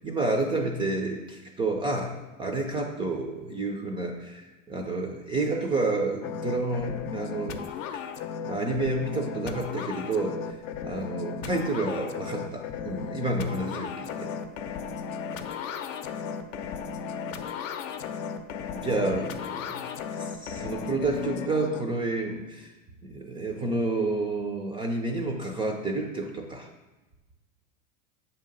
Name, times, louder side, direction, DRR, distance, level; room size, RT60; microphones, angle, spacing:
voice 1, 0.0-7.6 7.9-8.0 8.4-14.3 18.7-19.8 20.2-22.7 23.0-26.7, right 2 dB, 15° right, 2 dB, 0.3 m, -30 dB
sound 1, 6.2-21.8, left 7 dB, 70° left, 0.6 m, -35 dB
7.0 x 2.8 x 5.1 m, 1.1 s
hypercardioid pair, 110°, 40 cm